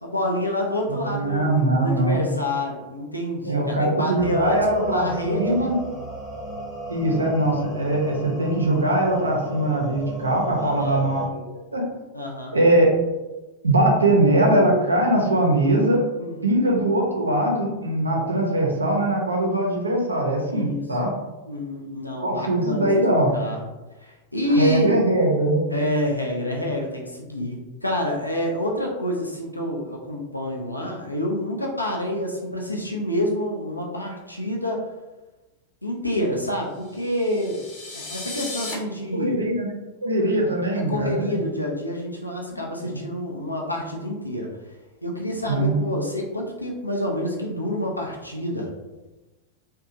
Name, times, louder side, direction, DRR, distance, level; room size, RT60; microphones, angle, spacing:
voice 1, 0.0-5.7 10.6-11.0 12.1-12.6 16.2-16.5 20.4-20.8 21.4-23.0 23.3-23.6 24.0-24.9 25.7-34.8 35.8-37.6 37.9-39.4 40.7-44.5 45.0-48.7, left 1 dB, 85° left, -1 dB, 0.4 m, -28 dB
voice 2, 0.9-2.3 3.4-5.8 6.9-11.8 12.5-12.9 13.6-16.0 16.4-21.1 22.2-23.3 24.6-25.7 39.1-39.7 40.0-41.4 42.5-42.9 45.5-45.8, right 1 dB, 80° right, -1 dB, 0.6 m, -21 dB
sound 1, 4.2-11.3, right 1 dB, 5° left, 0.7 m, -35 dB
sound 2, 36.8-38.7, left 3 dB, 45° left, 0.7 m, -36 dB
2.8 x 2.2 x 2.5 m, 1.1 s
figure-of-eight pair, 90°, 0 cm